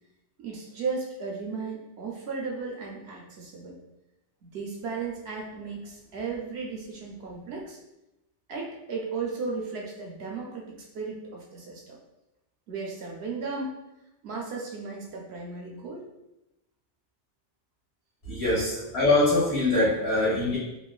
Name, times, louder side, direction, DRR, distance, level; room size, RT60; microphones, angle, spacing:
voice 1, 0.4-3.7 4.4-7.8 8.5-12.0 12.7-13.8 14.2-16.1 18.7-18.8, right 4 dB, 70° right, -1 dB, 0.8 m, -35 dB
voice 2, 18.2-20.6, left 2 dB, 60° left, -11 dB, 1.5 m, -23 dB
3.0 x 2.2 x 2.2 m, 0.92 s
omnidirectional pair, 1.2 m